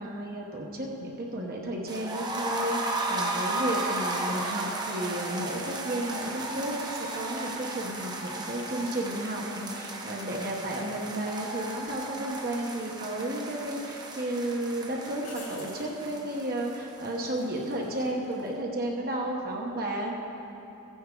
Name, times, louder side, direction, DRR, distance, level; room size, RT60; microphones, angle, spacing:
voice 1, 0.0-20.2, right 1 dB, 45° right, -1 dB, 1.0 m, -33 dB
sound 1, 1.9-17.7 18.0-18.1 18.4-18.5, right 2 dB, 20° right, 0.8 m, -35 dB
sound 2, 11.8-12.0 13.1-13.8 14.2-14.3 15.2-15.9 19.0-19.4, left 4 dB, 80° left, 1.9 m, -48 dB
14.0 x 9.3 x 3.8 m, 2.9 s
head